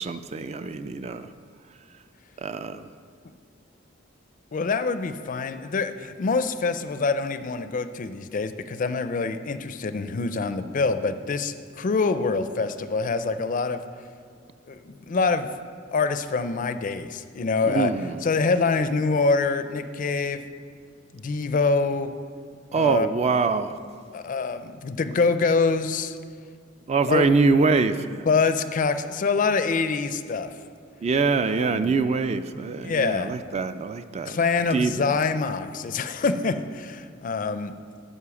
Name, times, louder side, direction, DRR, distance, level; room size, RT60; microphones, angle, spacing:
voice 1, 0.0-1.3 2.4-2.9 17.6-18.2 22.7-23.8 26.9-28.3 31.0-34.4 34.7-35.1, right 4 dB, 35° right, 11 dB, 0.3 m, -24 dB
voice 2, 4.5-13.8 14.7-15.5 15.9-17.9 18.2-20.4 21.1-22.1 22.7-23.1 24.1-26.2 27.1-27.3 28.3-30.5 31.5-31.9 32.8-33.3 34.2-37.7, left 4 dB, 40° left, 11 dB, 0.4 m, -25 dB
9.6 x 5.6 x 6.9 m, 2.1 s
head